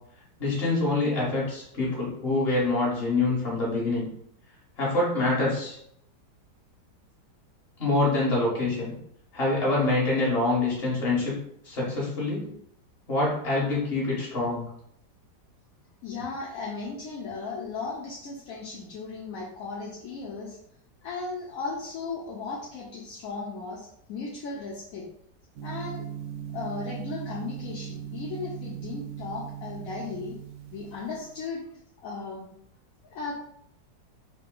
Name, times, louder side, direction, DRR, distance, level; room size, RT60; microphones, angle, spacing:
voice 1, 0.4-4.1 4.8-5.8 7.8-8.9 9.3-11.3 11.6-12.5 13.1-14.7, left 2 dB, 35° left, -5 dB, 1.4 m, -25 dB
voice 2, 16.0-20.6 21.0-25.0 25.6-26.1 26.5-30.3 30.7-31.7 32.0-32.5 33.1-33.3, left 4 dB, 70° left, -3 dB, 0.9 m, -36 dB
Gong, 25.6-31.4, right 9 dB, 90° right, 0.6 m, -39 dB
3.8 x 2.2 x 3.7 m, 0.70 s
omnidirectional pair, 1.9 m